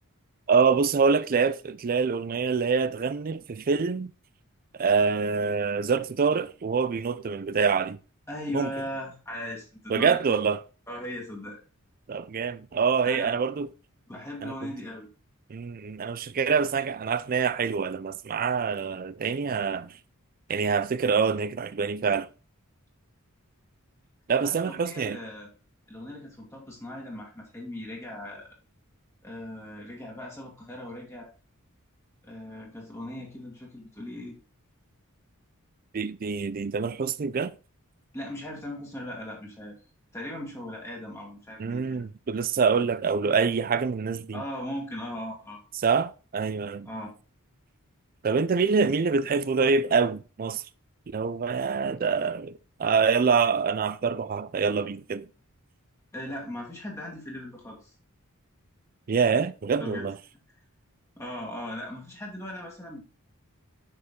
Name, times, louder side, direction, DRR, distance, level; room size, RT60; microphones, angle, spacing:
voice 1, 0.5-4.1 4.8-8.0 8.5-8.7 9.9-10.6 12.1-13.7 14.4-14.7 15.5-20.0 20.5-22.3 24.3-25.2 35.9-37.5 41.6-44.4 45.7-46.9 48.2-50.6 51.1-55.3 59.1-60.2, right 5 dB, 40° right, 0.4 m, -25 dB
voice 2, 8.3-10.4 10.9-11.6 13.0-13.3 14.1-15.1 24.4-25.5 25.9-28.5 29.2-31.3 32.2-34.4 38.1-39.7 40.1-42.1 44.3-45.6 46.9-47.1 56.1-57.9 59.8-60.0 61.2-63.0, left 1 dB, 15° left, 1.9 m, -38 dB
6.6 x 5.7 x 3.7 m
head